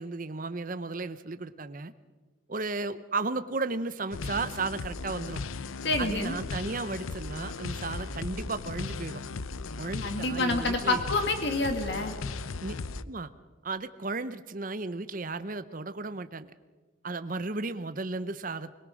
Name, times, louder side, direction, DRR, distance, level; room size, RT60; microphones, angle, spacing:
voice 1, 0.0-1.9 2.5-5.4 6.0-9.2 9.8-11.1 12.6-12.7 13.1-13.3 13.6-16.5 17.0-18.7, right 3 dB, 40° right, 12 dB, 0.8 m, -34 dB
sound 1, 4.1-13.0, left 4 dB, 90° left, 0.6 m, -37 dB
voice 2, 5.8-6.4 10.0-12.1, left 2 dB, 55° left, 5 dB, 2.0 m, -28 dB
22.0 x 21.5 x 6.4 m, 1.3 s
head